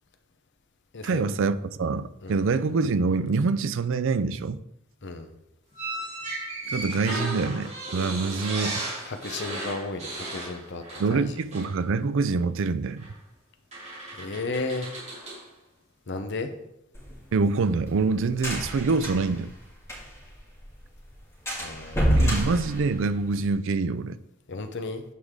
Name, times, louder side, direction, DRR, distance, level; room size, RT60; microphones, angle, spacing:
voice 1, 1.0-4.6 6.7-8.8 11.0-13.1 17.3-19.5 22.2-24.2, right 4 dB, 65° right, 0.4 m, -25 dB
sound 1, 5.7-11.2 11.5-11.7 13.0-13.1 13.7-15.4, right 2 dB, 35° right, 2.9 m, -35 dB
voice 2, 9.0-11.4 14.1-14.9 16.1-16.5 21.6-22.5 24.5-25.0, left 3 dB, 60° left, 0.8 m, -34 dB
sound 2, 16.9-20.3 20.6-20.7 21.0-21.1 21.5-23.5, equal, 15° left, 2.8 m, -27 dB
8.3 x 4.9 x 3.7 m
head